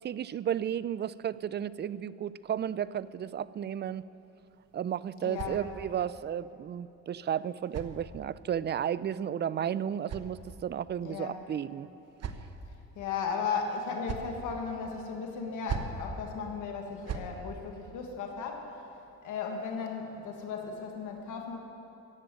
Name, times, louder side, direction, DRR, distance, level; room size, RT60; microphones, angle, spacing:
voice 1, 0.0-4.0 4.7-11.9, right 9 dB, 35° right, 18 dB, 0.4 m, -33 dB
sound 1, 4.5-6.1 7.1-8.6 9.5-10.9 11.7-12.8 13.7-14.4 15.4-16.1 16.8-17.4, right 6 dB, 55° right, 1.0 m, -42 dB
voice 2, 5.2-5.6 11.0-11.4 12.9-18.7 19.2-21.6, left 5 dB, 85° left, 2 dB, 1.5 m, -36 dB
14.0 x 7.8 x 9.0 m, 2.9 s
cardioid pair, 90°, 30 cm